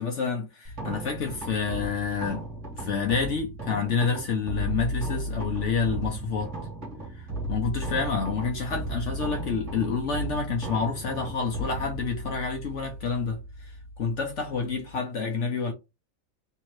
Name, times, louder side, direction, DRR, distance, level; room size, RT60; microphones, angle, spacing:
voice 1, 0.0-2.4 2.8-6.5 7.1-15.7, left 5 dB, 60° left, 0.7 m, -29 dB
sound 1, 0.6-14.9, right 1 dB, 30° right, 1.3 m, -35 dB
3.2 x 2.8 x 3.0 m
omnidirectional pair, 2.0 m